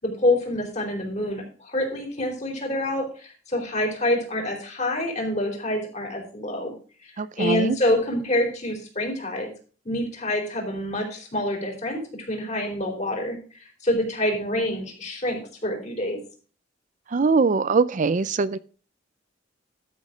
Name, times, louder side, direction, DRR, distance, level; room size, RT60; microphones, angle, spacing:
voice 1, 0.0-6.7 7.0-9.5 9.8-13.4 13.8-16.2, left 1 dB, 40° left, 4.1 m, -26 dB
voice 2, 7.2-7.8 17.1-18.6, right 4 dB, 45° right, 0.5 m, -22 dB
12.5 x 6.3 x 5.0 m
head